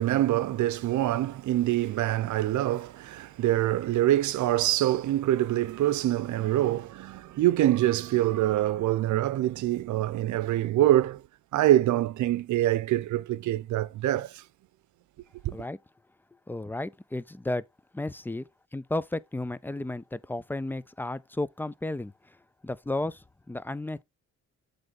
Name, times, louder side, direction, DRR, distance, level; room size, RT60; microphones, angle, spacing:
voice 1, 0.0-11.2 11.5-14.4, right 14 dB, 75° right, 0.7 m, -25 dB
voice 2, 16.5-17.6 17.9-18.5 18.7-22.1 22.6-24.0, left 2 dB, 5° left, 0.4 m, -33 dB
7.8 x 3.3 x 5.1 m
cardioid pair, 90°, 30 cm